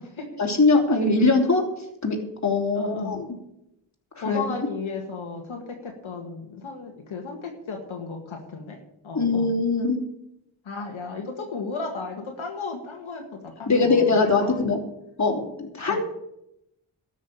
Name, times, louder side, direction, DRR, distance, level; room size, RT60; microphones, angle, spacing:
voice 1, 0.4-1.7 2.0-2.2 2.4-3.3 4.1-4.4 9.1-10.0 13.7-14.8 15.2-16.0, left 3 dB, 35° left, 0 dB, 3.2 m, -21 dB
voice 2, 2.7-3.2 4.2-8.8 9.0-9.5 10.6-14.7 15.9-16.0, left 4 dB, 75° left, 1 dB, 2.0 m, -35 dB
13.5 x 6.3 x 8.6 m, 0.82 s
cardioid pair, 80°, 48 cm